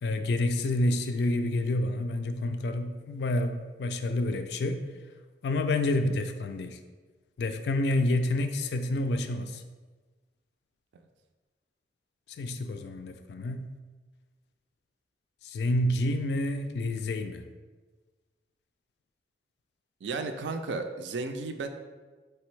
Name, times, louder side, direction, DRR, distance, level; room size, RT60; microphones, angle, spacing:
voice 1, 0.0-4.8 5.4-6.8 7.4-9.6 12.4-13.7 15.4-17.4, left 1 dB, 70° left, 7 dB, 0.3 m, -28 dB
voice 2, 20.0-21.7, right 3 dB, 85° right, 7 dB, 0.4 m, -34 dB
4.4 x 3.3 x 3.1 m, 1.3 s
head